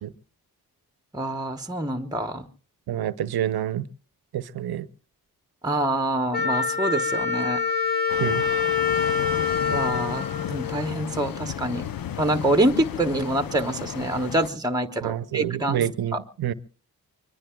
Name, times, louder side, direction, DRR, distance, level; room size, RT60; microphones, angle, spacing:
voice 1, 1.1-2.5 5.6-7.6 9.7-11.9 12.2-15.8 16.1-16.2, right 1 dB, 10° right, 1.0 m, -26 dB
voice 2, 2.9-3.8 4.3-4.9 8.2-8.4 15.0-16.5, right 11 dB, 75° right, 0.7 m, -27 dB
Wind instrument woodwind instrument, 6.3-11.1, left 6 dB, 25° left, 2.3 m, -25 dB
sound 1, 8.1-14.5, left 9 dB, 65° left, 0.7 m, -34 dB
24.5 x 22.5 x 2.3 m
cardioid pair, 45°, 38 cm